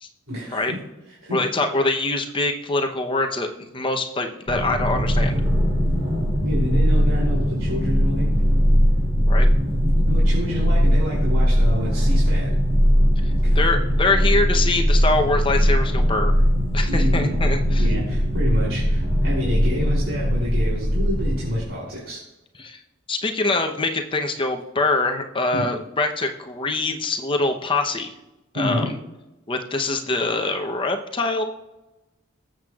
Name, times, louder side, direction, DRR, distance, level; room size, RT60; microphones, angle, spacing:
voice 1, 0.3-0.8 1.2-1.4 6.4-8.3 10.1-12.5 13.4-13.6 16.9-17.3 17.8-22.2 25.5-25.6 28.5-28.9, left 1 dB, 75° right, -6 dB, 3.1 m, -28 dB
voice 2, 1.3-3.5 3.7-5.4 9.3-9.5 13.5-16.4 16.7-17.9 22.6-22.8 23.1-28.1 28.5-29.0 29.5-31.4, left 2 dB, 25° left, 4 dB, 0.8 m, -24 dB
sound 1, 4.5-21.6, equal, 25° right, 3.8 m, -20 dB
20.5 x 7.6 x 2.4 m, 0.99 s
head